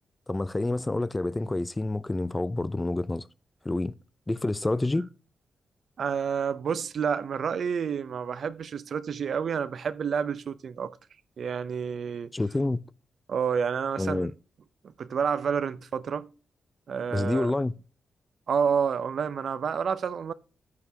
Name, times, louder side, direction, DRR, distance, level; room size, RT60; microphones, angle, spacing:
voice 1, 0.3-3.3 3.6-3.9 4.3-5.1 12.3-12.8 14.0-14.3 17.1-17.7, left 2 dB, 20° left, 0.5 m, -28 dB
voice 2, 6.0-11.0 11.4-12.3 13.3-14.3 15.0-16.3 16.9-17.5 18.5-20.3, right 6 dB, 70° right, 0.7 m, -29 dB
10.5 x 9.6 x 2.9 m
cardioid pair, 65°, 0 cm